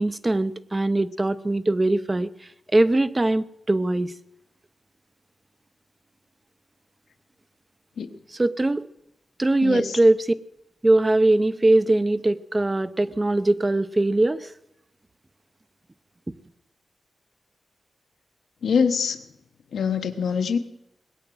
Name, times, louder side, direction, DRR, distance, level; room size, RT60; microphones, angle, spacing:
voice 1, 0.0-2.3 2.7-4.1 8.4-8.9 9.4-10.2 10.8-14.5, right 2 dB, 20° right, 14 dB, 0.6 m, -21 dB
voice 2, 9.6-10.0 18.6-19.3 19.7-20.6, left 6 dB, 90° left, 8 dB, 1.1 m, -24 dB
20.0 x 8.8 x 7.8 m, 0.82 s
wide cardioid pair, 115°, 0 cm